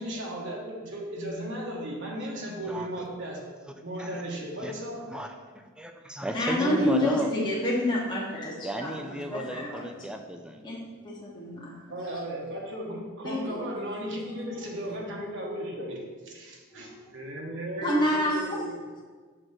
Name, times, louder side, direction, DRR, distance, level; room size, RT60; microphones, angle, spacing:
voice 1, 0.0-3.4 3.8-5.0 6.6-7.3 11.9-16.0 16.2-18.8, equal, 60° right, -2 dB, 1.3 m, -35 dB
voice 2, 5.1-7.3 8.6-10.8, right 1 dB, 5° right, 5 dB, 0.4 m, -35 dB
voice 3, 6.3-9.9 10.6-11.8 13.2-13.6 14.3-14.6 16.7-17.1 17.8-18.6, left 1 dB, 20° left, -6 dB, 1.2 m, -28 dB
6.2 x 3.9 x 6.2 m, 1.5 s
head